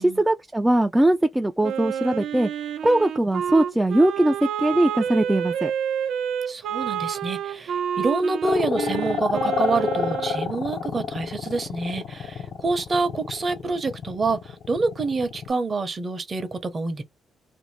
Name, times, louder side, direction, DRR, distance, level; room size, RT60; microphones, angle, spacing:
voice 1, 0.0-2.5 2.8-5.7, right 1 dB, 10° right, 0.3 m, -21 dB
Wind instrument woodwind instrument, 1.6-10.5, right 8 dB, 75° right, 0.5 m, -29 dB
voice 2, 6.5-17.0, right 3 dB, 35° right, 0.7 m, -27 dB
sound 1, 8.4-15.5, left 6 dB, 60° left, 0.5 m, -29 dB
2.6 x 2.0 x 3.1 m
cardioid pair, 90°, 0 cm